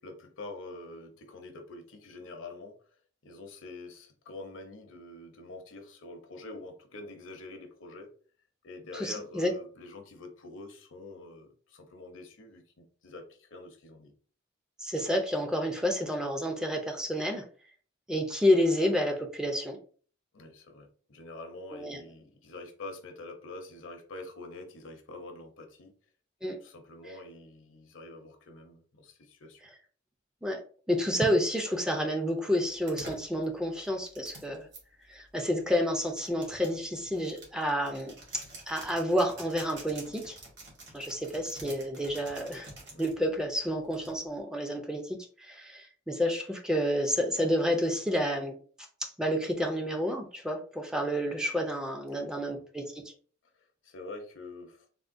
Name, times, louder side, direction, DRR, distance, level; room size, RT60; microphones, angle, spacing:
voice 1, 0.0-2.8 3.2-8.1 8.6-14.1 20.3-25.9 26.5-29.6 42.9-43.1 52.1-52.7 53.5-54.9, left 2 dB, 75° left, 4 dB, 0.7 m, -46 dB
voice 2, 8.9-9.5 14.8-17.4 18.1-19.8 21.7-22.0 26.4-26.6 30.4-30.6 30.9-34.7 35.1-40.4 40.9-42.7 43.0-48.6 49.0-52.8, equal, 5° right, 2 dB, 0.4 m, -29 dB
sound 1, 32.7-34.8 35.6-43.2 43.9-44.4, right 2 dB, 65° right, 1.2 m, -48 dB
3.5 x 2.1 x 2.5 m, 0.42 s
head